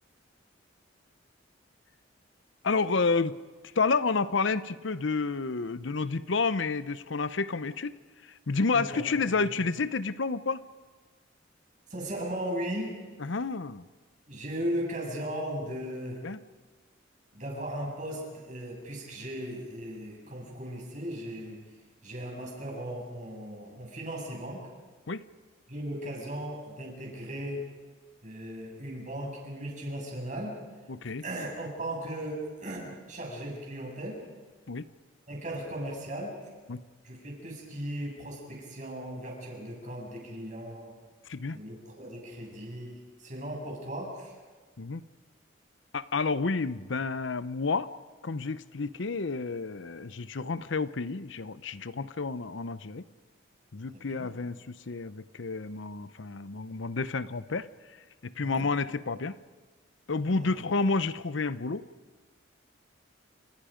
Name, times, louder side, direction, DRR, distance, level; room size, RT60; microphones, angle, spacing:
voice 1, 2.6-3.3 3.8-8.0 8.2-10.6 13.2-13.8 16.2-16.4 25.1-25.2 30.9-31.2 34.7-34.9 36.7-36.8 41.3-41.6 44.8-45.0 45.9-47.9 48.2-53.0 53.7-57.7 58.2-59.4 60.1-61.8, left 4 dB, 70° left, 15 dB, 0.7 m, -30 dB
voice 2, 11.9-13.0 14.3-16.2 17.3-21.6 22.0-24.7 25.7-27.7 28.2-30.6 31.2-34.2 35.3-36.4 37.0-40.9 41.5-44.3 53.9-54.3 58.4-58.7 60.3-60.6, right 1 dB, 40° right, -1 dB, 7.3 m, -37 dB
29.5 x 28.5 x 5.2 m, 1.4 s
head